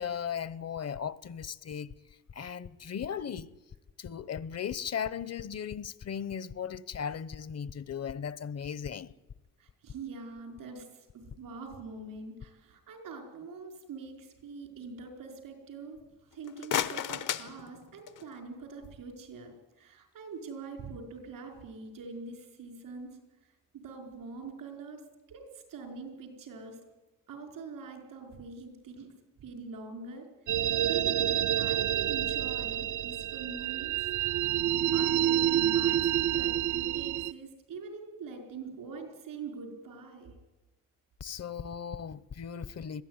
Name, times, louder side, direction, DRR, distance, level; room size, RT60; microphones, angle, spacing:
voice 1, 0.0-1.9 2.3-3.5 4.0-9.1 41.2-43.0, left 7 dB, 50° left, 0.9 m, -37 dB
voice 2, 9.6-23.2 23.7-25.0 25.3-26.8 27.3-29.1 29.4-30.6 30.9-34.0 34.4-40.4, right 4 dB, 90° right, 4.9 m, -44 dB
sound 1, 16.3-18.4, left 9 dB, 75° left, 1.1 m, -34 dB
sound 2, 30.5-37.3, right 11 dB, 65° right, 0.6 m, -28 dB
21.5 x 14.5 x 9.7 m
cardioid pair, 85°, 32 cm